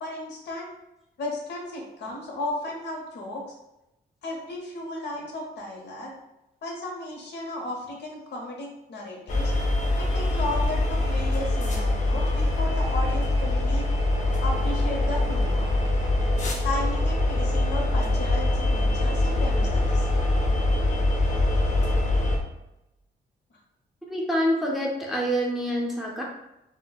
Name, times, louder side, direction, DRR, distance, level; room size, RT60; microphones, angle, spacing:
voice 1, 0.0-0.7 1.2-3.4 4.2-6.1 6.6-9.5 10.0-13.9 14.4-15.7 16.6-20.1, left 2 dB, 80° left, 0 dB, 0.8 m, -34 dB
sound 1, 9.3-22.4, left 2 dB, 45° left, 0.6 m, -24 dB
voice 2, 24.1-26.2, equal, ahead, -3 dB, 0.5 m, -26 dB
4.4 x 2.1 x 2.3 m, 0.89 s
wide cardioid pair, 160°, 18 cm